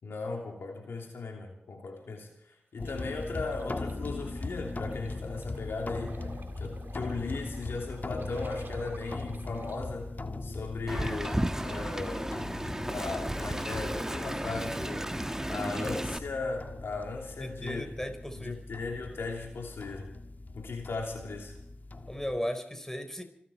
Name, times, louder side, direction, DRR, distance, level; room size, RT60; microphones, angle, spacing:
voice 1, 0.0-6.3 6.6-10.1 10.4-12.4 12.8-15.2 15.4-17.9 18.4-20.1 20.5-21.5, left 3 dB, 80° left, 2 dB, 3.0 m, -37 dB
sound 1, 2.8-22.4, left 2 dB, 50° left, 1.5 m, -40 dB
sound 2, 2.8-9.8, right 3 dB, 65° right, 2.2 m, -51 dB
Wind, 10.9-16.2, right 1 dB, 15° right, 1.3 m, -34 dB
voice 2, 17.4-18.6 22.1-23.2, equal, 10° left, 7 dB, 4.0 m, -36 dB
26.5 x 12.5 x 4.4 m, 0.75 s
cardioid pair, 40°, 4 cm